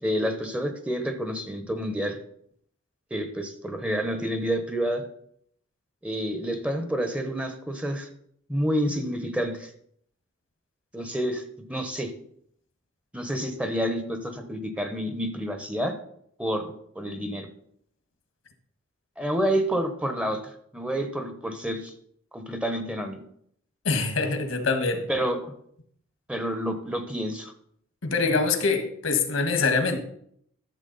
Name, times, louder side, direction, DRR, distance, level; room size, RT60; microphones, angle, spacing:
voice 1, 0.0-2.2 3.1-5.0 6.0-8.1 8.5-9.7 10.9-11.4 11.7-12.1 13.1-15.9 16.4-17.5 19.2-21.9 22.3-23.2 25.1-25.5 26.3-27.5, equal, 5° right, 6 dB, 0.9 m, -29 dB
voice 2, 23.8-25.0 28.0-30.0, left 4 dB, 80° left, 7 dB, 1.5 m, -24 dB
12.0 x 7.2 x 4.0 m, 0.68 s
head